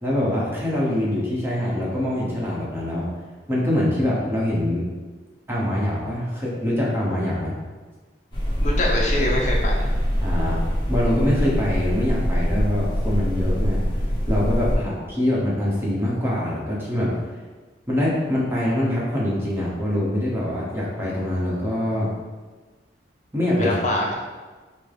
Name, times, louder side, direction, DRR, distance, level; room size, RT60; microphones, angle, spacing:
voice 1, 0.0-3.1 3.5-4.9 5.5-7.6 10.2-10.6 10.9-13.8 14.3-17.1 17.9-22.1 23.3-23.7, left 1 dB, 15° right, -6 dB, 1.0 m, -24 dB
sound 1, 8.3-14.8, equal, 25° left, 1.1 m, -23 dB
voice 2, 8.6-9.9 14.7-14.9 23.6-24.1, left 1 dB, 40° left, -2 dB, 0.6 m, -24 dB
6.0 x 2.1 x 3.4 m, 1.3 s
head